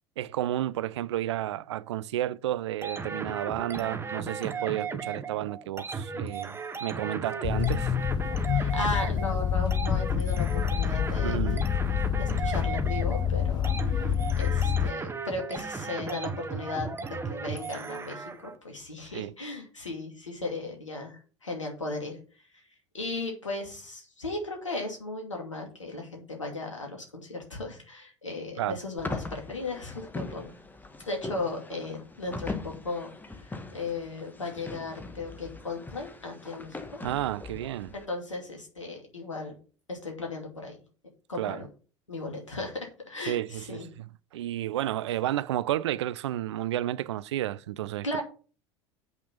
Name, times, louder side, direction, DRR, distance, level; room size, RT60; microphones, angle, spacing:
voice 1, 0.2-7.9 11.2-11.7 19.1-19.3 28.6-28.8 37.0-37.9 41.4-41.6 43.3-48.2, right 13 dB, 65° right, 0.4 m, -31 dB
sound 1, 2.8-18.6, right 5 dB, 15° right, 1.2 m, -36 dB
sound 2, 7.4-14.9, left 9 dB, 25° left, 0.4 m, -27 dB
voice 2, 8.5-11.4 12.1-13.7 14.4-22.2 22.9-30.6 31.1-33.5 33.7-37.0 37.9-39.5 39.9-40.8 41.3-41.7 42.1-43.9 48.0-48.2, left 2 dB, 80° left, 2.5 m, -36 dB
sound 3, 29.0-38.0, left 3 dB, 10° left, 1.4 m, -40 dB
8.0 x 5.8 x 5.6 m
figure-of-eight pair, 75°, 16 cm